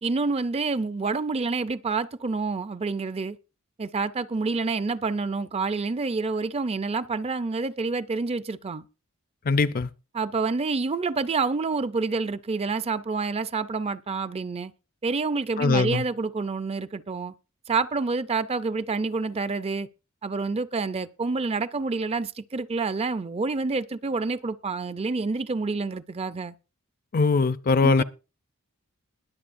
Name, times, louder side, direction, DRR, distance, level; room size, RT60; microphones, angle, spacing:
voice 1, 0.0-3.4 3.8-8.8 10.1-14.7 15.0-17.3 17.7-19.9 20.2-26.5 27.8-28.0, right 4 dB, 30° right, 0.4 m, -28 dB
voice 2, 9.5-9.9 15.6-16.0 27.1-28.0, left 4 dB, 40° left, 0.5 m, -21 dB
21.5 x 7.5 x 2.5 m
head